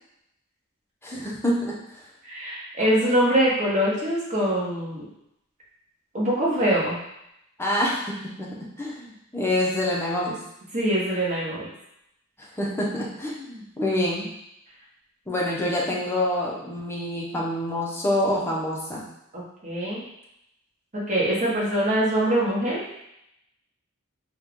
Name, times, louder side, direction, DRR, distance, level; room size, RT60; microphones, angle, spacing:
voice 1, 1.0-1.8 7.6-10.4 12.4-14.3 15.3-19.0, left 1 dB, 10° left, -4 dB, 0.7 m, -27 dB
voice 2, 2.2-5.1 6.1-7.0 10.7-11.7 19.3-20.0 20.9-22.9, right 1 dB, 35° right, -6 dB, 1.2 m, -23 dB
4.3 x 2.3 x 3.6 m, 0.81 s
head